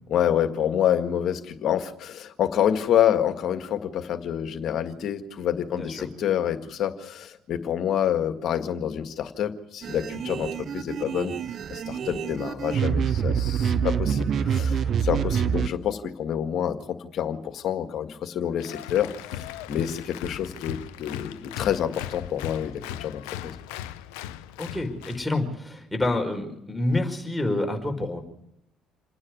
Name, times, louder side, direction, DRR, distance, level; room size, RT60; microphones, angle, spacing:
voice 1, 0.1-11.4 11.7-23.5, left 10 dB, 60° left, 8 dB, 1.7 m, -27 dB
voice 2, 5.7-6.1 24.6-28.2, left 2 dB, 10° left, 3 dB, 5.1 m, -28 dB
sound 1, 9.8-15.7, right 7 dB, 50° right, 0.9 m, -26 dB
Applause, 18.6-25.3, left 12 dB, 80° left, 0.7 m, -38 dB
28.0 x 9.7 x 9.6 m, 0.81 s
hypercardioid pair, 55°, 0 cm